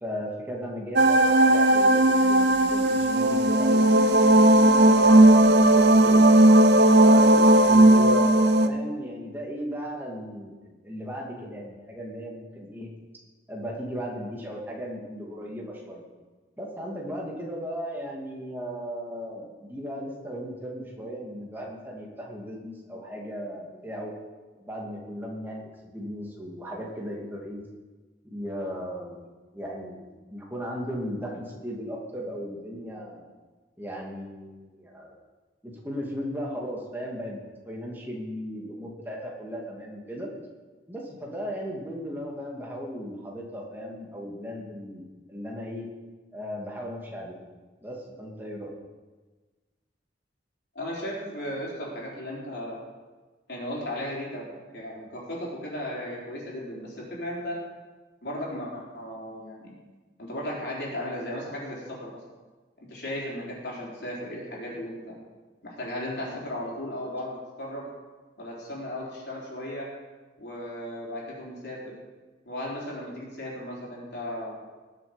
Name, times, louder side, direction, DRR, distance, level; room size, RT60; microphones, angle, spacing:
voice 1, 0.0-6.2 7.0-12.9 13.5-16.1 16.6-24.1 24.6-27.6 28.3-33.3 33.8-35.2 35.6-40.3 40.9-45.9 46.3-47.4 47.8-48.7, equal, 10° right, -2 dB, 2.4 m, -36 dB
sound 1, 1.0-8.7, right 1 dB, 65° right, 0.8 m, -17 dB
voice 2, 50.7-52.8 53.5-54.5 54.7-57.6 58.2-59.7 60.2-62.2 62.8-65.2 65.6-67.9 68.4-69.9 70.4-71.9 72.5-74.6, left 1 dB, 60° left, -4 dB, 4.1 m, -35 dB
20.0 x 7.5 x 5.2 m, 1.3 s
head